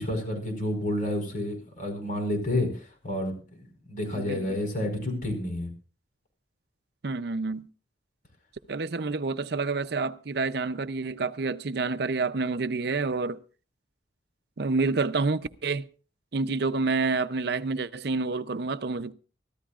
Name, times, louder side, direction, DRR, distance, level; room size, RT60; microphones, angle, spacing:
voice 1, 0.0-2.7 3.0-3.3 3.6-5.7, left 1 dB, 50° left, 4.8 m, -29 dB
voice 2, 4.1-4.9 7.0-7.7 8.7-13.4 14.6-15.9 16.3-19.1, right 4 dB, 60° right, 0.6 m, -28 dB
24.0 x 14.0 x 2.4 m
head